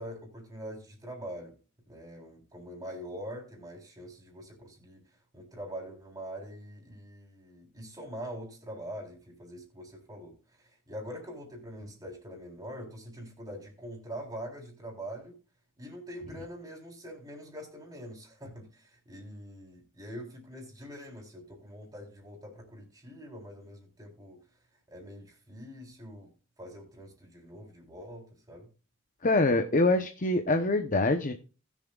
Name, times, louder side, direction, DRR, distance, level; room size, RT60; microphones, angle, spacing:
voice 1, 0.0-1.5 1.9-5.0 5.3-15.4 15.8-24.4 24.9-26.3 26.6-28.7, equal, 20° right, 0 dB, 3.8 m, -44 dB
voice 2, 29.2-31.3, left 2 dB, 40° left, 7 dB, 0.8 m, -25 dB
19.5 x 7.2 x 2.4 m, 0.36 s
head